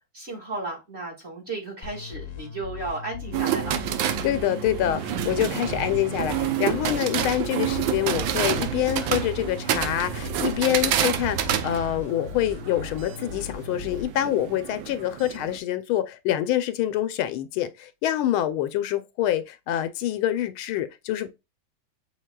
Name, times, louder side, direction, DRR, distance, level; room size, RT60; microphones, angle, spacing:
voice 1, 0.1-3.8, right 2 dB, 30° right, 1.9 m, -34 dB
sound 1, 1.8-14.0, left 5 dB, 45° left, 0.8 m, -38 dB
sound 2, 3.3-15.6, right 10 dB, 75° right, 1.3 m, -29 dB
voice 2, 4.2-21.3, left 12 dB, 80° left, 1.4 m, -26 dB
6.4 x 3.4 x 2.2 m
omnidirectional pair, 2.3 m